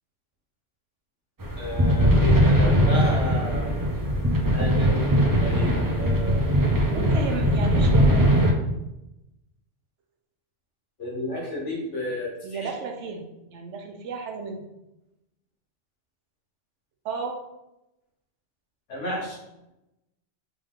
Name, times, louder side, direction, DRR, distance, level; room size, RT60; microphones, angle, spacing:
sound 1, 1.4-8.5, equal, 35° right, 0.3 m, -20 dB
voice 1, 1.6-3.7 4.5-6.5 11.0-12.7 18.9-19.4, left 1 dB, 90° left, -3 dB, 1.6 m, -32 dB
voice 2, 6.9-8.3 12.4-14.7 17.0-17.4 19.1-19.3, right 4 dB, 85° right, 3 dB, 1.0 m, -33 dB
3.5 x 3.4 x 3.6 m, 0.92 s
omnidirectional pair, 1.2 m